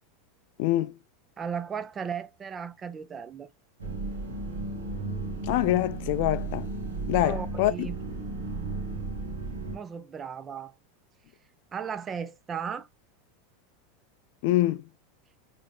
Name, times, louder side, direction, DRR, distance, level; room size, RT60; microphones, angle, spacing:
voice 1, 0.6-1.0 5.4-6.7 7.1-7.9 14.4-14.9, left 15 dB, 55° left, 0.4 m, -25 dB
voice 2, 1.4-3.5 7.2-8.0 9.7-10.7 11.7-12.9, right 7 dB, 25° right, 0.5 m, -36 dB
sound 1, 3.8-9.8, right 3 dB, 80° right, 1.4 m, -34 dB
4.6 x 3.4 x 2.3 m
figure-of-eight pair, 85°, 0 cm